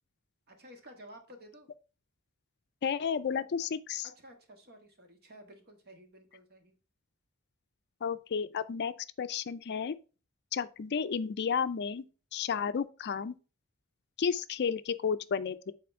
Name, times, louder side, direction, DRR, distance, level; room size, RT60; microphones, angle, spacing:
voice 1, 0.5-1.7 4.0-6.7, equal, 45° right, 1.6 m, -53 dB
voice 2, 2.8-4.1 8.0-9.9 10.5-12.0 12.3-13.3 14.2-15.7, left 6 dB, 50° left, 0.4 m, -32 dB
7.7 x 4.3 x 4.4 m
head